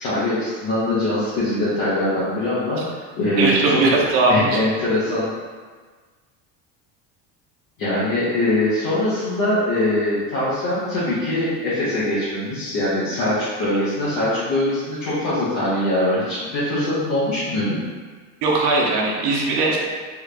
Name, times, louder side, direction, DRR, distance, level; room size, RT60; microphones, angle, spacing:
voice 1, 0.0-2.8 3.2-3.8 4.3-5.3 7.8-17.8, left 1 dB, 60° left, -12 dB, 1.4 m, -22 dB
voice 2, 3.4-4.6 18.4-19.8, right 2 dB, 80° right, -2 dB, 0.8 m, -19 dB
3.6 x 2.4 x 3.4 m, 1.4 s
cardioid pair, 140°, 36 cm